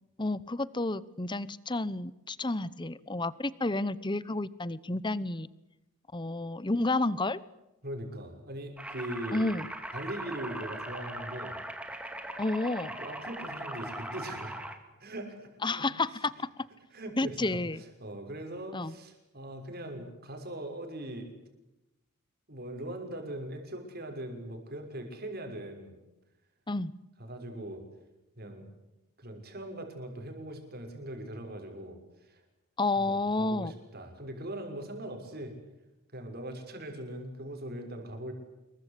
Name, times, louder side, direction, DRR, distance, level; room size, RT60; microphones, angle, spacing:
voice 1, 0.2-5.5 6.1-7.4 9.3-9.7 12.4-13.0 15.6-16.5 17.2-17.8 18.7-18.9 26.7-26.9 32.8-33.7, left 2 dB, 20° left, 18 dB, 0.9 m, -30 dB
voice 2, 7.8-9.5 9.9-11.6 13.0-15.9 16.9-21.4 22.5-25.9 27.2-27.8 28.4-28.7 29.2-32.4 32.9-35.6 36.1-38.3, right 1 dB, 45° right, 4 dB, 6.3 m, -41 dB
sound 1, 8.8-14.8, right 1 dB, 5° right, 2.5 m, -40 dB
27.0 x 23.0 x 8.5 m, 0.96 s
head